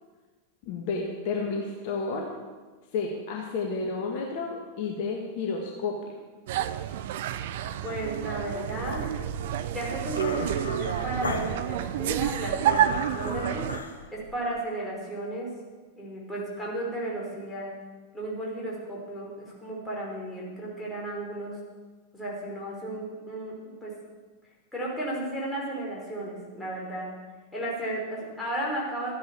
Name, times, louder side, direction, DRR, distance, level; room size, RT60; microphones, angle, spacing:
voice 1, 0.6-2.3 2.9-6.1, left 4 dB, 45° left, 0 dB, 1.8 m, -31 dB
sound 1, 6.5-13.8, right 11 dB, 55° right, 0.6 m, -29 dB
voice 2, 7.8-9.1 9.7-13.7 14.1-15.5 16.0-17.7 18.1-21.6 22.1-23.9 24.7-27.1 27.5-29.2, right 1 dB, 10° left, -5 dB, 5.2 m, -34 dB
sound 2, 8.8-14.6, left 3 dB, 75° left, 1.3 m, -38 dB
14.0 x 9.8 x 7.2 m, 1.3 s
figure-of-eight pair, 90°, 0 cm